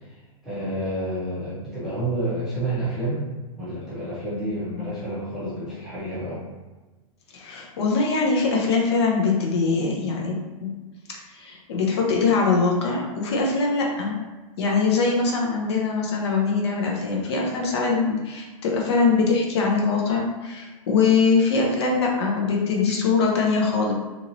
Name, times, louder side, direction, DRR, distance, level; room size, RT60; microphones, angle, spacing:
voice 1, 0.4-3.2 3.6-6.4, right 1 dB, 5° right, -12 dB, 0.6 m, -29 dB
voice 2, 7.3-10.7 11.3-14.2 14.6-23.9, left 4 dB, 45° left, -1 dB, 0.6 m, -22 dB
2.9 x 2.8 x 2.5 m, 1.2 s
supercardioid pair, 175°, 19 cm